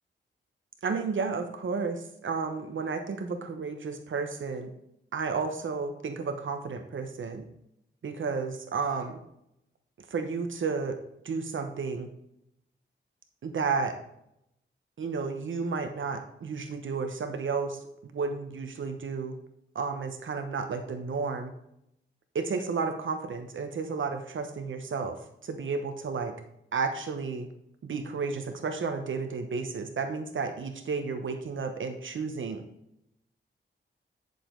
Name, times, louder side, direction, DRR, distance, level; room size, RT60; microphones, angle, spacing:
voice 1, 0.8-4.7 5.1-7.4 8.0-9.2 10.1-11.0 11.2-12.1 13.4-13.9 15.0-17.8 18.1-19.3 19.7-21.5 22.3-26.3 26.7-27.5 27.8-32.6, right 4 dB, 75° right, 6 dB, 1.1 m, -32 dB
10.0 x 6.8 x 3.9 m, 0.77 s
cardioid pair, 80°, 20 cm